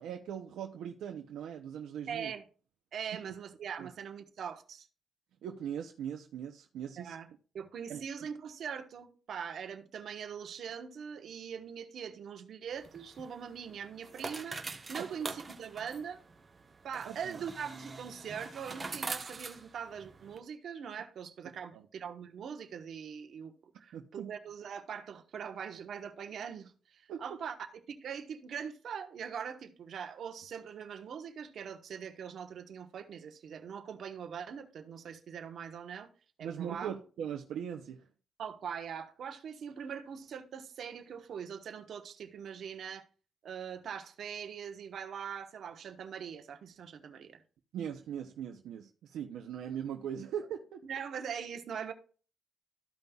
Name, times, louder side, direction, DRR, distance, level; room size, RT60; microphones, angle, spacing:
voice 1, 0.0-2.3 3.8-3.9 5.4-7.1 7.9-8.0 15.0-15.1 17.0-17.4 21.7-21.9 23.9-24.3 27.1-27.4 36.4-38.1 47.7-50.8, right 9 dB, 90° right, 0.6 m, -40 dB
voice 2, 2.1-2.4 2.9-4.9 7.0-7.3 7.5-14.6 14.9-16.2 16.8-27.6 27.9-36.1 36.4-36.9 38.4-43.1 43.4-47.4 50.8-51.9, right 7 dB, 65° right, 1.1 m, -42 dB
sound 1, 12.7-20.4, right 4 dB, 30° right, 1.0 m, -44 dB
14.0 x 5.3 x 2.3 m
cardioid pair, 110°, 0 cm